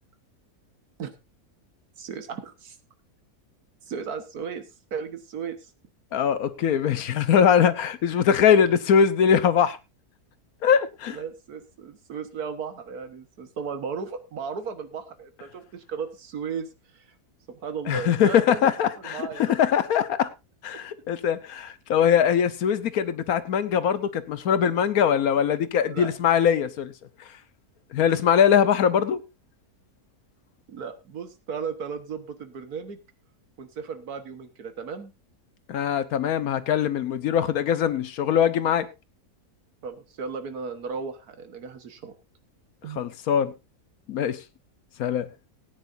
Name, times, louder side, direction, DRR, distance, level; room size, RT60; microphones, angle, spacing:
voice 1, 2.0-2.8 3.9-5.7 11.1-17.1 17.5-18.7 19.0-19.4 25.9-26.1 30.7-33.0 33.6-35.1 39.8-42.1 42.8-43.0, right 6 dB, 75° right, 1.8 m, -35 dB
voice 2, 6.1-9.8 10.6-11.2 17.9-20.3 20.6-26.9 27.9-29.2 35.7-38.9 42.9-43.5 44.1-44.4 45.0-45.3, left 8 dB, 70° left, 1.3 m, -22 dB
18.5 x 9.5 x 2.6 m
omnidirectional pair, 1.6 m